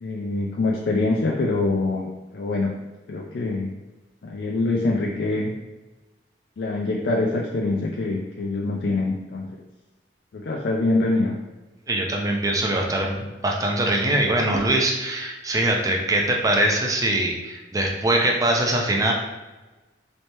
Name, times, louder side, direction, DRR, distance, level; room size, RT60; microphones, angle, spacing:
voice 1, 0.0-2.7 3.1-3.7 4.2-5.5 6.6-9.5 10.3-11.3, left 2 dB, 65° left, -1 dB, 0.4 m, -24 dB
voice 2, 11.9-19.1, right 1 dB, 20° right, 0 dB, 0.4 m, -22 dB
3.2 x 3.2 x 2.8 m, 1.1 s
head